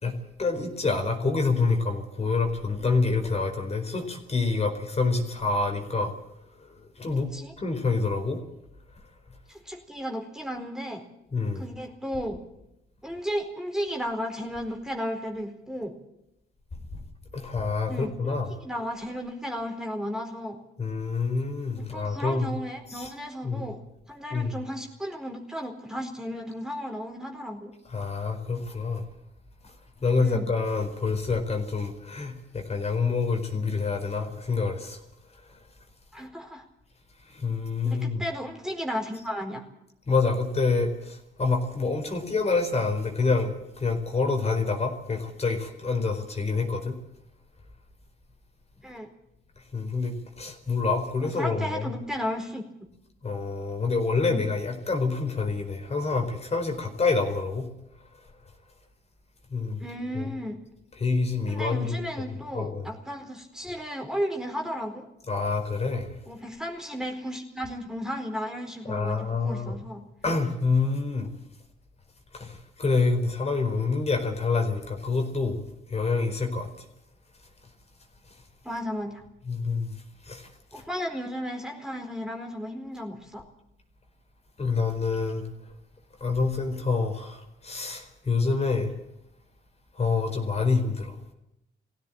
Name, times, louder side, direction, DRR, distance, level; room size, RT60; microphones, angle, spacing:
voice 1, 0.4-6.1 7.0-7.3 7.6-8.4 11.3-11.7 17.3-18.6 20.8-22.5 22.9-23.1 23.4-23.7 24.3-24.6 27.9-29.0 30.0-35.0 37.3-38.2 40.1-46.9 49.7-51.9 53.2-57.7 59.5-59.8 60.1-60.3 61.0-62.0 62.5-62.9 65.3-66.1 68.8-69.8 70.2-71.3 72.3-75.6 75.9-76.7 79.5-79.9 80.3-80.4 84.6-85.4 86.2-88.9 90.0-91.3, left 4 dB, 30° left, 4 dB, 4.7 m, -27 dB
voice 2, 9.5-11.0 11.5-12.4 13.0-15.9 17.9-18.3 18.6-20.6 21.8-23.8 24.1-27.7 30.2-30.5 36.1-36.6 37.8-39.6 48.8-49.1 51.4-52.6 54.3-54.4 59.8-60.6 61.5-65.1 66.3-70.0 78.6-79.2 80.7-83.4, equal, 5° right, 1 dB, 4.5 m, -34 dB
21.5 x 16.0 x 9.0 m, 0.85 s
cardioid pair, 115°, 20 cm